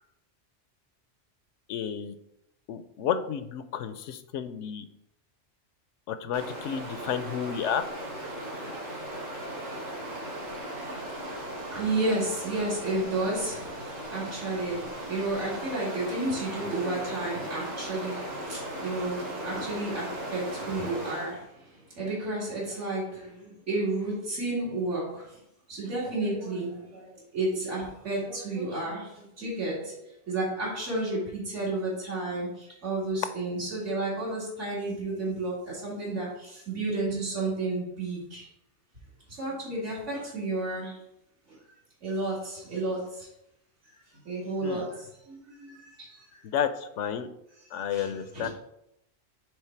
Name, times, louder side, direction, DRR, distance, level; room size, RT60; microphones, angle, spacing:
voice 1, 1.7-2.1 2.7-4.8 6.1-7.8 44.6-44.9 46.4-47.3 47.7-48.5, left 8 dB, 85° left, 11 dB, 0.9 m, -31 dB
Stream, 6.3-21.4, right 1 dB, 65° right, 2.8 m, -37 dB
voice 2, 11.7-13.7 14.1-21.4 22.0-23.3 23.7-25.1 25.7-27.0 27.3-29.1 29.4-29.9 30.3-32.5 32.8-36.3 36.7-38.4 39.4-40.9 42.0-43.1 44.3-44.9 45.3-45.4 45.6-45.7 47.9-48.1 48.3-48.5, right 2 dB, 80° right, -7 dB, 2.5 m, -31 dB
8.0 x 3.4 x 4.4 m, 0.80 s
omnidirectional pair, 1.2 m